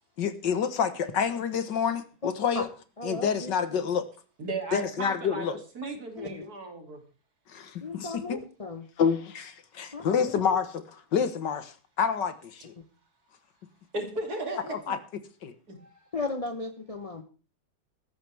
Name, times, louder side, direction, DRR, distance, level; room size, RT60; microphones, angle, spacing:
voice 1, 0.2-2.7 3.0-4.1 4.7-5.6 7.5-8.4 9.0-10.7 11.1-12.7 14.7-15.0 15.4-15.5, left 7 dB, 65° left, 11 dB, 1.8 m, -28 dB
voice 2, 3.0-3.5 5.8-6.4 7.8-8.9 9.9-10.2 10.5-10.6 16.1-17.2, left 3 dB, 25° left, 7 dB, 0.8 m, -35 dB
voice 3, 4.4-7.0 13.9-14.9 15.7-15.9, right 2 dB, 50° right, 4 dB, 3.2 m, -35 dB
16.5 x 14.0 x 3.4 m, 0.36 s
omnidirectional pair, 2.1 m